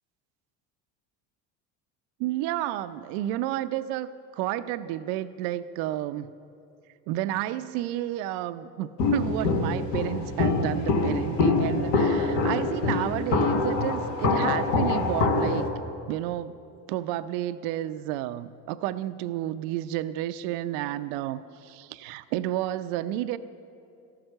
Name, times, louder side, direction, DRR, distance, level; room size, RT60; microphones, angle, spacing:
voice 1, 2.2-4.1 4.4-6.3 7.1-15.7 16.1-16.5 16.9-23.4, right 13 dB, 80° right, 12 dB, 0.6 m, -31 dB
Walk footsteps, 9.0-15.7, left 3 dB, 75° left, 1.7 m, -25 dB
14.0 x 12.5 x 6.6 m, 2.4 s
supercardioid pair, 110°, 40 cm